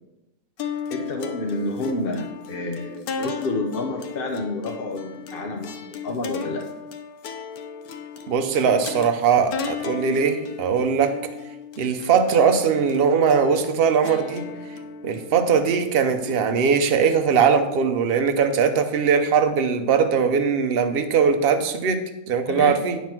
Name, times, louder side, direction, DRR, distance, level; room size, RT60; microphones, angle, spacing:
sound 1, 0.6-17.0, left 6 dB, 85° left, 1.3 m, -35 dB
voice 1, 0.9-6.6 22.5-22.8, left 2 dB, 45° left, 2 dB, 0.9 m, -29 dB
voice 2, 8.3-11.1 11.8-14.5 15.0-22.0 22.3-23.0, right 6 dB, 50° right, 7 dB, 0.8 m, -20 dB
9.4 x 5.8 x 4.5 m, 0.99 s
omnidirectional pair, 1.5 m